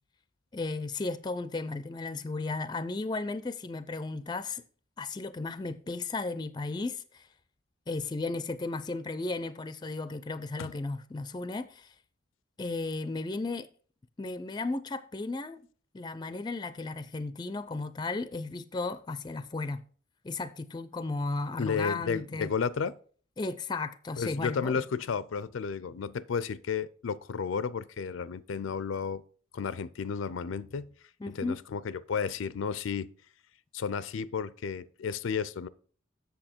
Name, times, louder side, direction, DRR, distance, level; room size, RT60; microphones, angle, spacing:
voice 1, 0.5-4.6 5.0-7.3 7.9-11.9 12.6-13.7 14.2-15.7 15.9-19.8 20.2-22.5 23.4-24.8 31.2-31.6, left 3 dB, 20° left, 0.4 m, -35 dB
voice 2, 21.6-22.9 24.2-29.2 29.5-30.9 31.3-33.1 33.7-35.7, left 6 dB, 90° left, 0.4 m, -32 dB
7.8 x 6.9 x 4.4 m
head